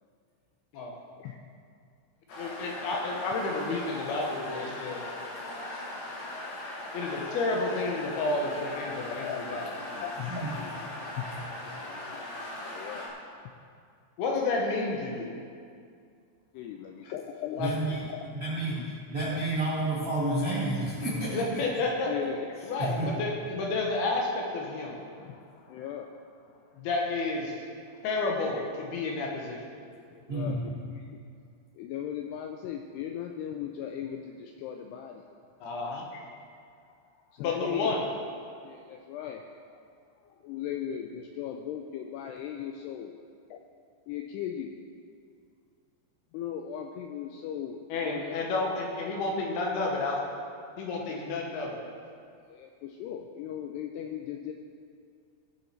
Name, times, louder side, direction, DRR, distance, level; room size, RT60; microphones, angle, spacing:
sound 1, 2.3-13.1, left 1 dB, 55° left, 2.1 m, -39 dB
voice 1, 2.4-5.0 6.9-9.7 14.2-15.3 17.6-17.7 21.3-22.1 22.6-25.0 26.8-27.5 28.0-29.6 35.6-36.0 37.4-38.0 47.9-50.2 50.8-51.8, left 3 dB, 70° left, 0 dB, 2.8 m, -30 dB
voice 2, 9.1-11.3 11.8-12.2 12.6-13.1 16.5-17.6 18.1-18.2 18.7-18.9 19.4-19.9 22.1-22.7 25.2-26.7 27.9-28.0 30.1-31.2 31.7-35.3 36.1-36.2 37.0-37.9 38.6-39.5 40.2-43.2 43.5-43.6 44.1-44.8 46.3-48.5 51.1-51.3 52.5-54.5, left 9 dB, 90° left, 3 dB, 2.3 m, -38 dB
voice 3, 17.6-18.0 18.4-18.8 19.1-21.6 22.8-23.1 30.3-30.6, right 2 dB, 60° right, -8 dB, 0.9 m, -30 dB
19.0 x 6.5 x 4.4 m, 2.3 s
omnidirectional pair, 5.3 m